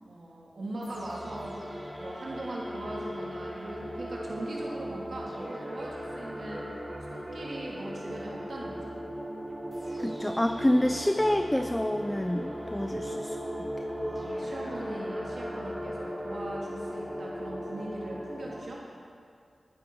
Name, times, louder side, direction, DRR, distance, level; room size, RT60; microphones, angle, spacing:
voice 1, 0.0-1.6 2.0-6.7 7.0-9.1 14.0-18.9, right 1 dB, 70° right, -4 dB, 2.9 m, -40 dB
sound 1, 0.8-18.6, equal, 5° right, 2.7 m, -38 dB
sound 2, 5.4-13.6, right 1 dB, 35° right, 4.0 m, -49 dB
voice 2, 10.0-13.4, left 1 dB, 15° left, 9 dB, 0.5 m, -27 dB
12.0 x 10.5 x 5.9 m, 2.2 s
cardioid pair, 40°, 0 cm